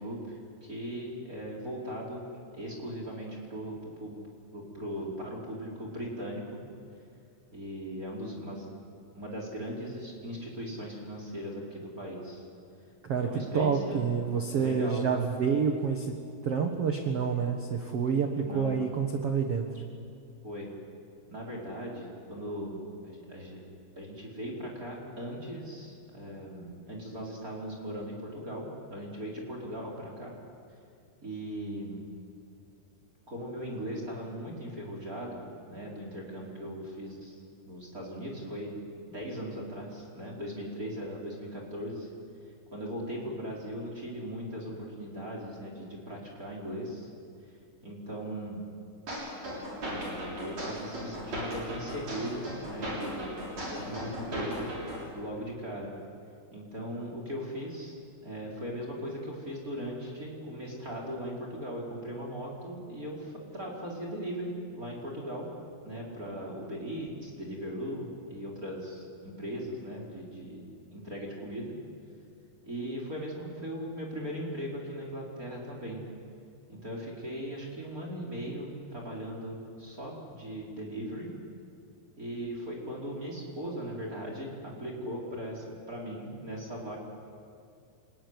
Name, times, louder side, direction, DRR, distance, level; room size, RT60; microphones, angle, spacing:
voice 1, 0.0-2.3 2.5-4.3 4.5-6.6 7.5-8.7 9.1-12.5 13.2-14.0 14.5-15.1 18.4-18.8 20.4-20.7 21.3-23.6 24.0-30.3 31.2-32.0 33.3-37.4 37.7-38.7 39.0-42.1 42.7-47.1 47.8-48.6 49.8-53.3 53.6-54.7 55.1-55.9 56.5-65.5 65.8-71.8 72.6-76.0 76.7-81.3 82.2-87.0, equal, 20° right, -1 dB, 4.4 m, -38 dB
voice 2, 13.0-16.1 16.4-19.7, right 6 dB, 60° right, 4 dB, 1.6 m, -28 dB
sound 1, 49.1-55.1, equal, 40° right, 7.6 m, -37 dB
28.0 x 20.0 x 9.8 m, 2.4 s
omnidirectional pair, 4.9 m